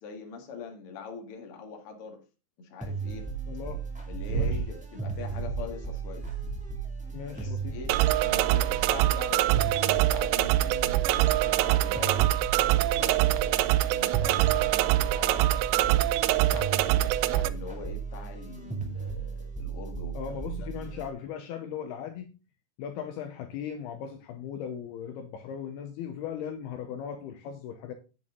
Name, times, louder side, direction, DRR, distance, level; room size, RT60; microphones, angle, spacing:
voice 1, 0.0-2.2 2.6-3.3 4.1-6.3 7.3-12.3 12.9-15.9 16.3-20.7, left 5 dB, 45° left, 2.1 m, -43 dB
sound 1, 2.8-21.1, right 5 dB, 10° right, 0.5 m, -36 dB
voice 2, 3.5-3.8 4.3-4.6 7.1-7.8 20.1-22.4 22.8-27.9, left 8 dB, 75° left, 2.6 m, -38 dB
sound 2, 4.3-4.7 5.2-5.7 6.3-6.9 7.4-7.9 8.5-8.8 9.5-9.9 10.9-11.0, right 5 dB, 55° right, 2.3 m, -34 dB
sound 3, 7.9-17.5, right 15 dB, 90° right, 2.1 m, -24 dB
9.0 x 8.5 x 3.7 m
omnidirectional pair, 5.0 m